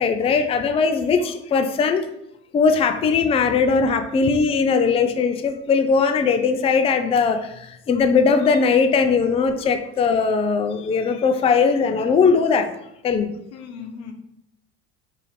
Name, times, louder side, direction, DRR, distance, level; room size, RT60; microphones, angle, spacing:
voice 1, 0.0-2.1 2.5-12.7 13.0-13.3, left 5 dB, 20° left, 8 dB, 0.3 m, -19 dB
voice 2, 3.2-3.6 13.5-14.1, left 6 dB, 90° left, 4 dB, 0.7 m, -39 dB
5.4 x 2.6 x 3.2 m, 0.80 s
supercardioid pair, 85°, 32 cm